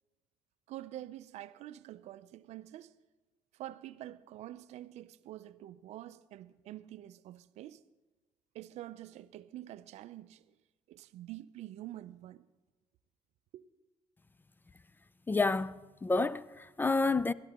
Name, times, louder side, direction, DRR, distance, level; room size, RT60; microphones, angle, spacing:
voice 1, 0.7-2.9 3.5-7.8 8.5-10.6 10.9-12.5 13.5-13.6, right 14 dB, 70° right, 0.5 m, -47 dB
voice 2, 15.3-17.3, left 3 dB, 15° left, 0.3 m, -29 dB
20.5 x 12.5 x 2.9 m
supercardioid pair, 80°, 12 cm